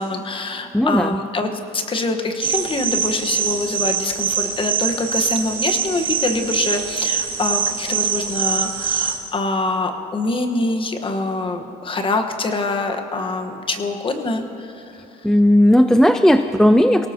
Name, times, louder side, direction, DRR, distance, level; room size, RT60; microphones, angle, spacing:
voice 1, 0.0-15.0, left 2 dB, 30° left, 5 dB, 1.4 m, -24 dB
voice 2, 0.7-1.2 15.2-17.1, equal, 5° left, 9 dB, 0.4 m, -14 dB
sound 1, 2.4-9.2, right 7 dB, 55° right, 2.4 m, -23 dB
24.0 x 18.0 x 3.0 m, 2.9 s
cardioid pair, 110°, 17 cm